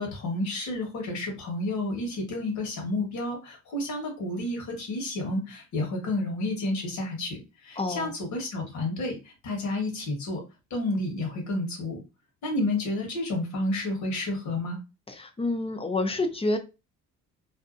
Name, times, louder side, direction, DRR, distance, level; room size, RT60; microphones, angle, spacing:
voice 1, 0.0-9.2 9.4-10.4 10.7-12.0 12.4-14.8, left 2 dB, 70° left, 1 dB, 1.3 m, -30 dB
voice 2, 7.8-8.1 15.1-16.6, left 2 dB, 20° left, 6 dB, 0.5 m, -28 dB
2.6 x 2.2 x 2.4 m, 0.28 s
cardioid pair, 90°, 30 cm